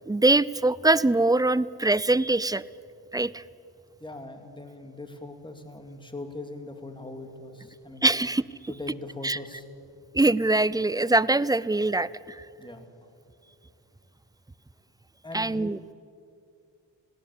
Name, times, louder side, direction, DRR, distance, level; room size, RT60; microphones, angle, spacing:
voice 1, 0.1-2.6 3.1-3.4 8.0-8.4 9.2-9.4 10.1-12.4 15.3-15.8, right 2 dB, 10° right, 18 dB, 0.4 m, -23 dB
voice 2, 4.0-8.1 8.7-9.6 12.6-12.9 15.2-15.6, left 2 dB, 10° left, 6 dB, 2.5 m, -41 dB
19.5 x 17.0 x 9.9 m, 2.5 s
cardioid pair, 90°, 44 cm